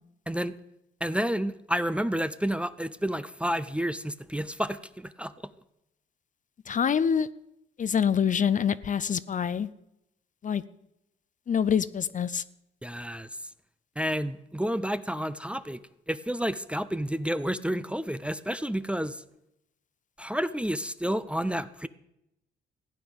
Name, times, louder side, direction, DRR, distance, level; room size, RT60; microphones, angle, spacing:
voice 1, 0.3-0.6 1.0-5.5 12.8-13.5 14.0-15.8 16.1-19.2 20.2-21.9, equal, 5° right, 13 dB, 0.6 m, -30 dB
voice 2, 6.7-7.3 7.8-9.7 10.4-10.6 11.5-12.4, left 7 dB, 40° left, 16 dB, 0.6 m, -25 dB
15.0 x 9.3 x 7.0 m, 0.84 s
cardioid pair, 90°, 20 cm